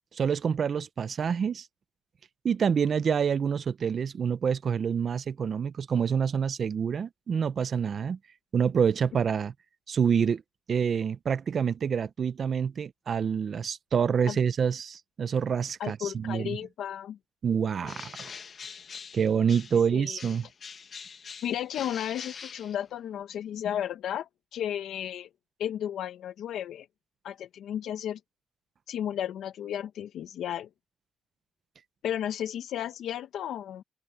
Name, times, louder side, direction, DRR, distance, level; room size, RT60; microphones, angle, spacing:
voice 1, 0.1-1.7 2.4-8.2 8.5-9.5 9.9-10.4 10.7-16.6 17.4-18.3 19.1-20.5, right 7 dB, 50° right, 0.8 m, -27 dB
voice 2, 15.8-17.2 19.9-20.2 21.4-25.3 25.6-26.9 27.2-28.2 28.9-30.7 32.0-33.8, left 10 dB, 75° left, 1.1 m, -33 dB
Bird, 17.8-19.9 20.2-23.2, left 6 dB, 45° left, 1.3 m, -44 dB
cardioid pair, 90°, 0 cm